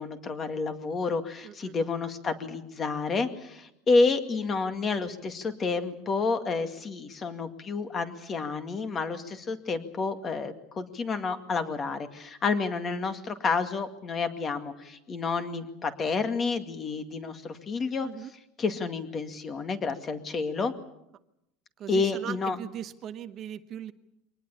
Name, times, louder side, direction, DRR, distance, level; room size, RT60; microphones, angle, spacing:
voice 1, 0.0-18.1 18.6-20.7 21.9-22.6, left 4 dB, 25° left, 8 dB, 2.1 m, -29 dB
voice 2, 1.4-1.7 18.0-18.3 21.8-23.9, right 10 dB, 40° right, 11 dB, 0.9 m, -39 dB
24.0 x 19.5 x 8.4 m, 0.81 s
cardioid pair, 150°, 0 cm